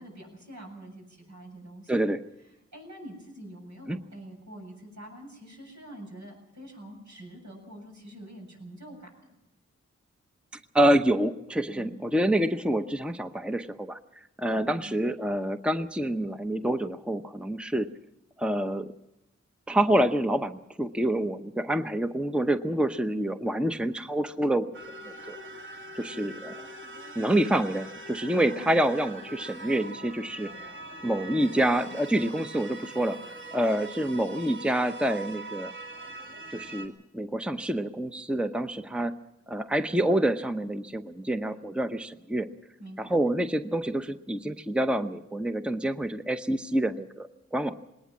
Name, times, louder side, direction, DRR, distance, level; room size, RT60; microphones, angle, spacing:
voice 1, 0.0-1.9 2.7-9.3 11.7-12.1 14.5-14.9 28.3-28.8 42.8-43.1, right 1 dB, 75° right, 0 dB, 7.7 m, -45 dB
voice 2, 1.9-2.2 3.9-4.0 10.7-14.0 14.4-17.9 18.4-18.9 19.7-24.7 25.3-25.4 25.9-26.6 27.2-30.7 31.0-33.2 33.5-35.7 36.5-39.2 39.5-42.5 43.0-47.8, right 1 dB, 5° right, 8 dB, 0.8 m, -27 dB
sound 1, 24.7-36.9, right 2 dB, 40° right, 2.5 m, -42 dB
20.0 x 19.0 x 7.5 m, 0.90 s
wide cardioid pair, 60°, 29 cm